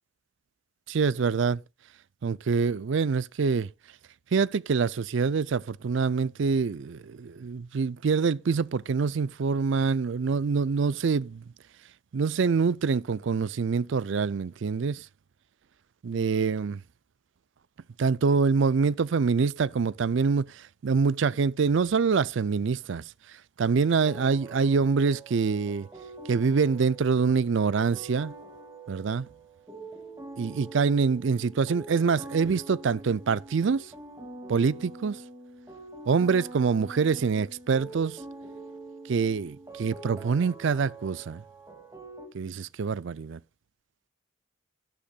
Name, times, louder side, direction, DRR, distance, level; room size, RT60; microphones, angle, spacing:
voice 1, 0.9-1.6 2.2-3.7 4.3-11.4 12.1-15.1 16.0-16.8 18.0-23.1 23.6-25.9 26.3-28.3 28.9-29.3 30.4-33.9 34.5-35.2 36.1-38.2 39.1-41.4 42.3-43.4, right 5 dB, 65° right, 0.4 m, -25 dB
sound 1, 24.0-42.3, right 2 dB, 15° right, 2.3 m, -45 dB
12.0 x 11.5 x 2.3 m
head